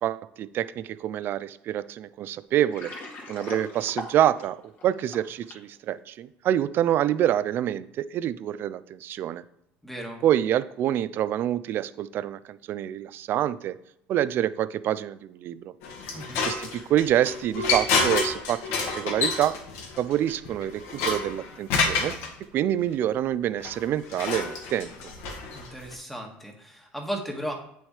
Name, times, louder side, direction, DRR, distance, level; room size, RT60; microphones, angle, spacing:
voice 1, 0.0-2.9 3.3-4.6 4.8-9.4 10.2-13.7 14.1-15.6 16.4-19.5 20.0-22.1 22.5-24.9, right 11 dB, 50° right, 15 dB, 0.5 m, -26 dB
Water, 2.5-5.7, left 3 dB, 40° left, 2.3 m, -39 dB
voice 2, 9.8-10.2 16.1-16.5 25.5-27.5, equal, 5° left, 2 dB, 1.8 m, -35 dB
sound 1, 15.8-22.3 23.6-25.9, left 4 dB, 70° left, 1.9 m, -29 dB
8.7 x 6.2 x 3.3 m, 0.77 s
supercardioid pair, 120°, 5 cm